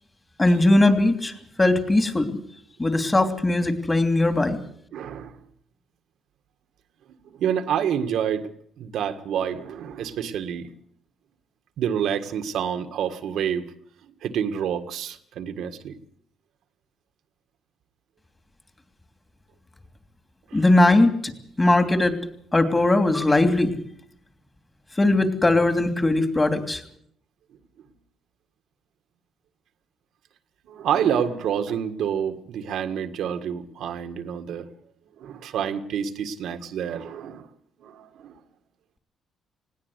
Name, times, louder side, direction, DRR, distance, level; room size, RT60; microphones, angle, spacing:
voice 1, 0.4-1.3 1.6-2.4 2.8-4.6 20.5-21.3 21.6-22.1 22.5-23.8 25.0-26.8, left 2 dB, 20° left, 7 dB, 3.0 m, -19 dB
voice 2, 4.9-5.3 7.2-8.5 8.8-10.7 11.8-13.7 14.2-15.9 20.5-20.6 30.7-34.7 35.2-37.5 37.8-38.3, right 8 dB, 75° right, 9 dB, 1.8 m, -28 dB
20.0 x 17.5 x 8.2 m, 0.66 s
cardioid pair, 90°, 0 cm